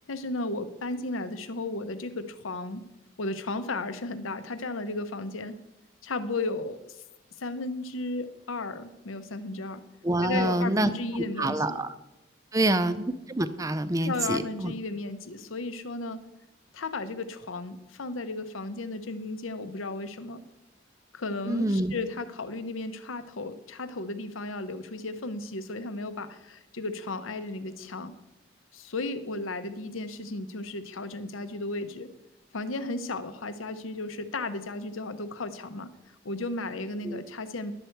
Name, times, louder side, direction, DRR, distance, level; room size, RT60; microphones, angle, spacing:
voice 1, 0.1-2.8 3.2-5.6 6.0-7.0 7.4-9.8 10.2-11.8 12.6-12.8 14.0-16.2 16.7-20.4 21.1-28.1 28.7-32.1 32.5-35.9 36.2-37.8, left 2 dB, 85° left, 11 dB, 0.8 m, -34 dB
voice 2, 10.0-10.9 11.4-11.9 12.5-14.7 21.5-21.9 37.0-37.2, right 1 dB, 15° right, 12 dB, 0.4 m, -26 dB
11.5 x 7.9 x 4.5 m, 0.99 s
head